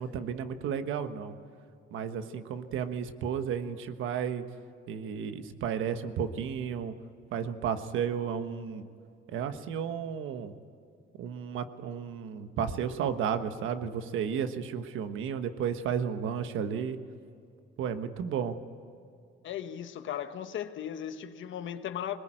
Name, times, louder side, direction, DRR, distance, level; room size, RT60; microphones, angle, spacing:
voice 1, 0.0-1.3 1.9-4.4 4.9-6.9 7.3-8.8 9.3-10.5 11.2-17.0 17.8-18.5, right 7 dB, 85° right, 9 dB, 1.3 m, -33 dB
voice 2, 19.4-22.2, left 10 dB, 75° left, 9 dB, 1.3 m, -37 dB
22.0 x 19.5 x 9.0 m, 2.5 s
cardioid pair, 90°, 20 cm